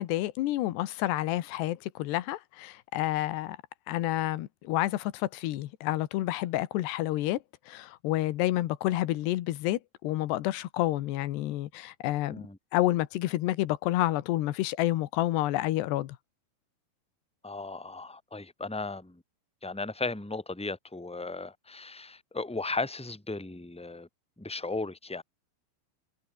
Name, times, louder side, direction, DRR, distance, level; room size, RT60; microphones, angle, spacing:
voice 1, 0.0-3.6 3.9-7.4 7.7-12.4 12.7-16.2, left 15 dB, 75° left, 3.3 m, -29 dB
voice 2, 17.4-19.2 19.6-24.1 24.4-25.2, left 3 dB, ahead, 3.0 m, -36 dB
omnidirectional pair, 5.0 m